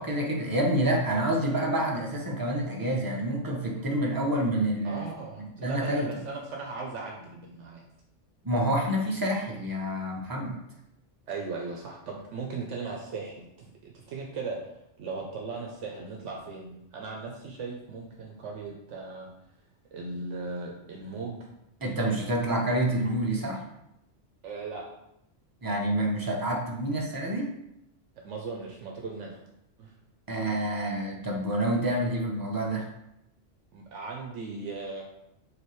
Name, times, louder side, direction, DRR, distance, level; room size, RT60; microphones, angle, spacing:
voice 1, 0.0-5.1 5.4-6.1 8.4-10.6 21.8-23.6 25.6-27.5 30.3-32.9, right 1 dB, 30° right, -2 dB, 0.4 m, -28 dB
voice 2, 4.8-7.8 11.3-14.7 15.0-19.3 19.9-21.4 24.4-24.8 28.2-29.4 29.8-29.9 33.7-35.0, right 4 dB, 75° right, -1 dB, 0.9 m, -38 dB
4.9 x 2.7 x 3.0 m, 0.83 s
omnidirectional pair, 1.3 m